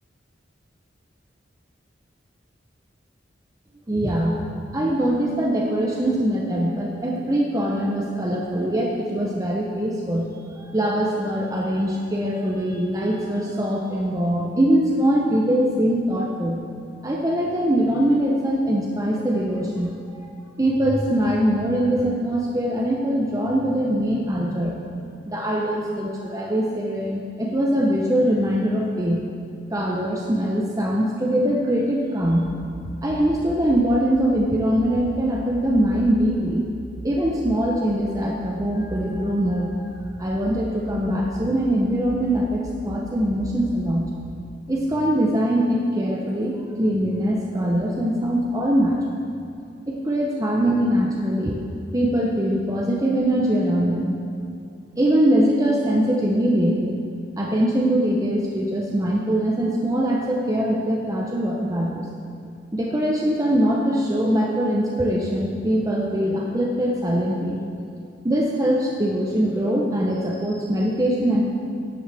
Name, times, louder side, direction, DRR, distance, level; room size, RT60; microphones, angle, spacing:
voice 1, 3.9-4.4 4.7-16.6 17.0-20.3 20.6-24.8 25.3-29.2 29.7-32.5 33.0-36.6 37.0-39.8 40.2-44.1 44.7-49.2 49.9-51.6 51.9-54.2 55.0-57.0 57.4-62.1 62.7-67.6 68.2-71.4, equal, 20° right, -2 dB, 0.7 m, -22 dB
sound 1, 32.2-44.2, right 1 dB, 40° right, 1.3 m, -40 dB
11.0 x 9.3 x 3.4 m, 2.5 s
head